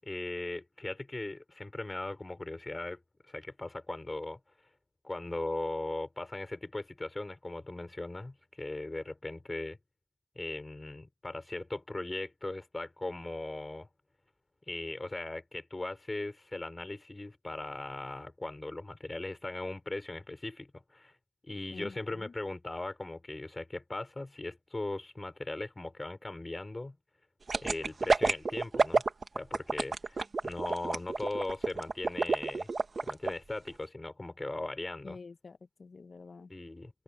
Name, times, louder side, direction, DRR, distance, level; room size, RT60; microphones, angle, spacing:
voice 1, 0.0-3.0 3.3-4.4 5.0-9.8 10.4-13.9 14.7-21.1 21.4-27.0 27.6-29.0 29.3-30.2 30.4-32.7 33.0-35.2 36.5-36.9, left 2 dB, 15° left, 5.7 m, -38 dB
voice 2, 21.7-22.3 35.0-36.5, left 4 dB, 35° left, 1.6 m, -48 dB
sound 1, 27.5-33.3 33.7-33.8, right 4 dB, 30° right, 1.7 m, -28 dB
open air
cardioid pair, 90°, 0 cm